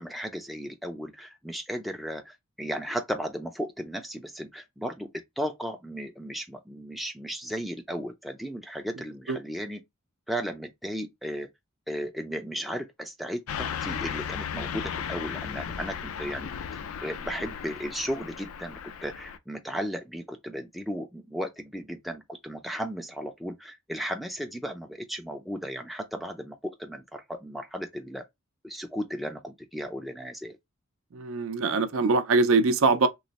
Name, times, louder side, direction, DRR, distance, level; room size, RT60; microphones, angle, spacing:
voice 1, 0.0-9.8 10.3-11.5 11.9-16.5 17.0-28.2 28.6-30.6, equal, ahead, 0.4 m, -35 dB
Car passing by / Truck, 13.5-19.4, left 8 dB, 80° left, 0.4 m, -35 dB
voice 2, 31.1-33.1, right 3 dB, 70° right, 0.5 m, -23 dB
3.1 x 2.0 x 4.0 m
head